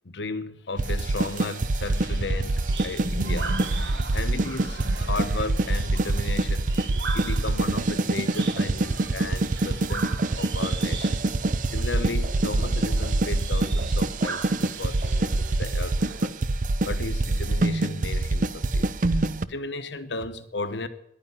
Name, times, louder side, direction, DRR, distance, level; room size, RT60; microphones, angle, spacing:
voice 1, 0.0-6.9 7.1-11.2 11.7-16.4 16.8-19.2 19.5-20.9, left 3 dB, 75° left, 1.1 m, -35 dB
Crazy Metal Drummer, 0.8-19.5, right 2 dB, 45° right, 0.5 m, -25 dB
sound 1, 1.9-16.2, right 2 dB, 70° right, 1.3 m, -37 dB
11.0 x 10.0 x 9.7 m
head